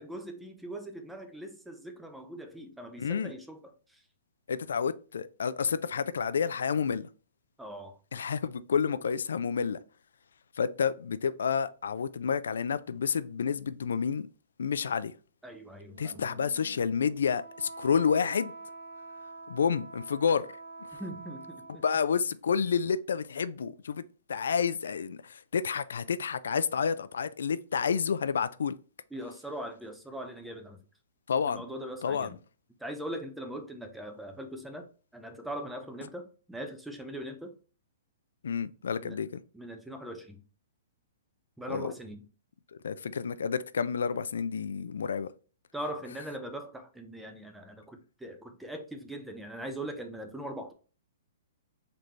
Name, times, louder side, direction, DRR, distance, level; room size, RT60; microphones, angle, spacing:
voice 1, 0.0-4.0 7.6-8.0 15.4-16.3 20.9-21.8 29.1-30.8 31.5-32.4 32.8-37.5 39.0-39.2 39.5-40.4 41.6-42.3 45.7-50.7, right 1 dB, ahead, 0.3 m, -41 dB
voice 2, 3.0-3.3 4.5-7.1 8.1-9.8 10.6-14.3 14.6-15.1 16.0-18.5 19.5-20.5 21.8-24.0 24.3-28.8 31.3-31.6 32.0-32.3 38.4-39.4 41.7-41.9 42.8-45.3, left 6 dB, 80° left, 0.3 m, -29 dB
Wind instrument woodwind instrument, 15.9-22.1, right 3 dB, 80° right, 0.7 m, -46 dB
3.9 x 3.3 x 3.1 m
hypercardioid pair, 180°, 0 cm